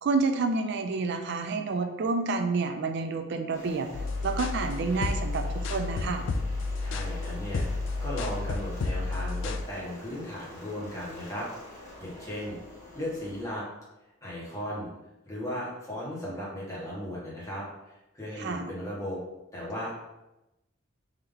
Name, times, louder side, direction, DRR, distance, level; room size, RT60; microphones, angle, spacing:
voice 1, 0.0-3.9 4.2-6.3 18.4-18.7, right 4 dB, 55° right, 6 dB, 0.4 m, -29 dB
sound 1, 3.5-13.4, left 2 dB, 35° left, 1.5 m, -47 dB
sound 2, 3.9-9.6, left 3 dB, 60° left, 0.3 m, -31 dB
voice 2, 6.8-11.5 12.0-12.6 12.9-13.6 14.2-14.9 15.3-17.6 18.1-19.2 19.5-19.9, equal, 15° left, -6 dB, 1.2 m, -36 dB
3.6 x 2.9 x 3.5 m, 0.96 s
head